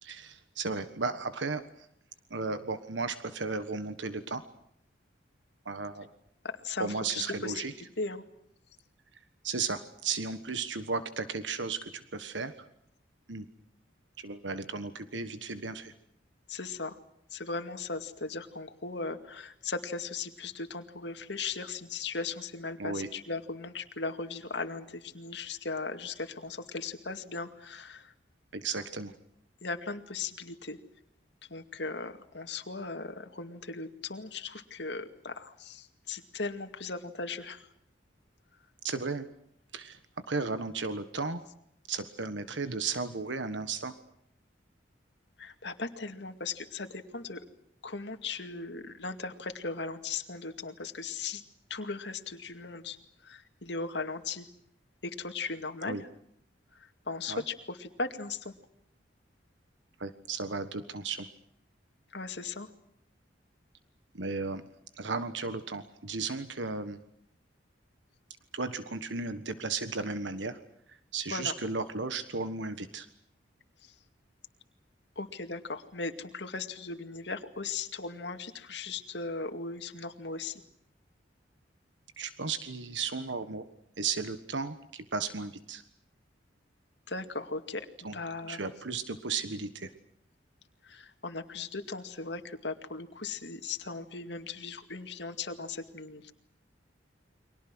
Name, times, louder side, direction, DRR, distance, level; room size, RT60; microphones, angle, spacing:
voice 1, 0.0-1.9 2.3-4.4 5.6-6.1 6.8-7.7 9.4-12.5 13.3-13.5 14.2-15.9 22.8-23.1 28.5-29.1 38.8-39.3 39.7-40.0 40.3-41.4 41.9-43.9 55.9-56.0 57.3-57.4 60.0-61.3 64.1-64.6 64.9-67.0 68.5-70.6 70.9-73.1 82.2-83.7 84.0-85.8 88.0-88.2 88.5-89.9, right 4 dB, 75° right, 10 dB, 1.4 m, -35 dB
voice 2, 6.6-7.5 8.0-8.2 16.5-17.0 17.3-28.1 29.6-30.8 31.5-37.7 45.4-47.4 47.8-51.4 51.7-53.0 53.2-54.5 55.0-56.1 56.7-58.5 62.1-62.7 71.3-71.5 73.8-73.9 75.2-80.6 87.1-87.9 88.1-88.6 90.8-96.3, left 4 dB, 65° left, 6 dB, 2.3 m, -38 dB
30.0 x 24.0 x 6.3 m, 0.73 s
head